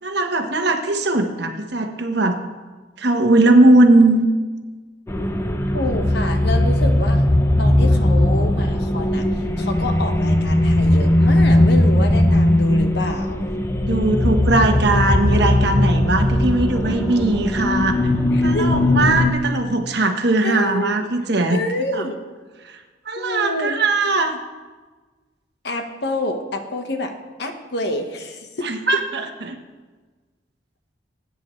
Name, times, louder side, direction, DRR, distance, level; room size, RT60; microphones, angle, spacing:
voice 1, 0.0-2.4 3.0-4.3 13.9-18.0 18.4-21.6 21.9-22.0 22.6-22.7 23.1-24.4 28.6-29.6, right 2 dB, 65° right, 5 dB, 1.2 m, -19 dB
sound 1, 5.1-19.3, left 1 dB, 15° left, 0.7 m, -18 dB
voice 2, 5.7-7.3 7.6-13.4 18.3-18.7 20.4-20.9 21.5-22.2 23.2-23.8 25.6-27.1 27.4-28.6, left 1 dB, 65° left, 5 dB, 1.3 m, -27 dB
20.0 x 9.4 x 3.2 m, 1.3 s
head